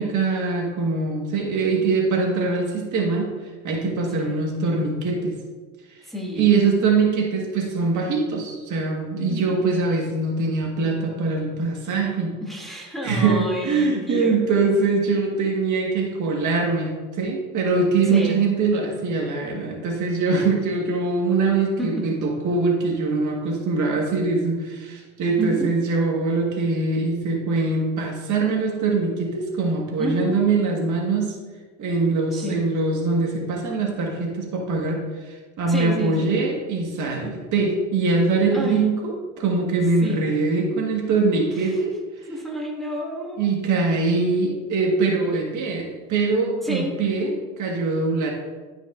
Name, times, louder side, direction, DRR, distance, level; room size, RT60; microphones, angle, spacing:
voice 1, 0.0-5.4 6.0-12.3 13.0-31.4 31.8-41.9 43.4-48.3, right 3 dB, 55° right, 0 dB, 1.6 m, -23 dB
voice 2, 6.0-6.5 9.3-9.6 12.4-14.6 18.1-18.4 21.8-22.1 25.4-25.7 30.0-30.4 32.3-32.7 35.7-36.4 38.5-38.9 40.0-40.2 41.5-41.8 42.3-43.5 46.6-46.9, equal, ahead, -3 dB, 1.8 m, -30 dB
11.5 x 5.3 x 2.5 m, 1.4 s
supercardioid pair, 85°, 37 cm